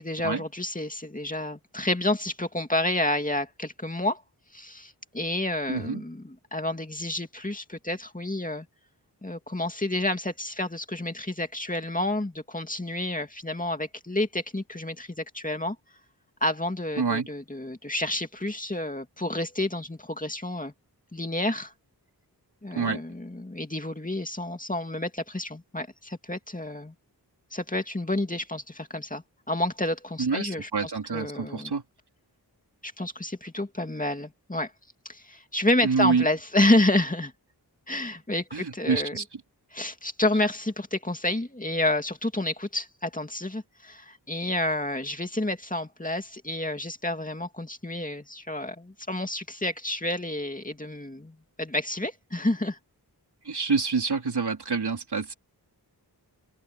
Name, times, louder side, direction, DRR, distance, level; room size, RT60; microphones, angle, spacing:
voice 1, 0.0-4.2 4.5-8.7 9.2-15.8 16.4-20.7 21.1-21.7 22.6-26.9 27.5-31.7 32.8-34.7 35.0-37.3 37.9-39.2 39.7-52.8, left 1 dB, 20° left, 2.4 m, -29 dB
voice 2, 5.7-6.0 17.0-17.3 22.8-23.0 30.2-31.8 35.8-36.3 38.5-39.2 53.4-55.3, right 5 dB, 75° right, 3.6 m, -27 dB
open air
wide cardioid pair, 80°, 40 cm